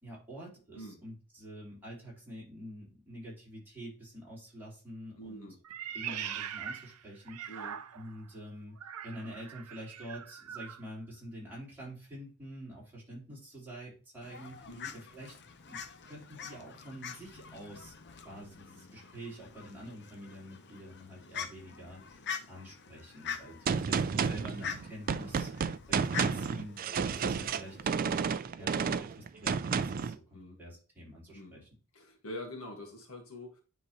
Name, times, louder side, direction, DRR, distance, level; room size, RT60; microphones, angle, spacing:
voice 1, 0.0-5.5 5.9-7.6 7.9-8.8 9.0-15.3 15.7-15.8 16.0-17.9 18.2-25.5 25.9-31.7, equal, 10° right, -6 dB, 3.8 m, -47 dB
voice 2, 5.1-5.6 7.5-7.8 14.7-14.9 28.8-29.0 30.3-30.6 31.3-31.5 31.9-33.6, left 1 dB, 65° left, 0 dB, 1.7 m, -44 dB
Meow, 5.6-8.2 8.8-10.8, right 9 dB, 85° right, 0.6 m, -42 dB
Fowl, 14.2-27.8, left 7 dB, 50° left, 0.7 m, -45 dB
Gunshot gunfire, 23.7-30.2, right 6 dB, 40° right, 0.3 m, -31 dB
9.7 x 4.0 x 3.0 m, 0.35 s
head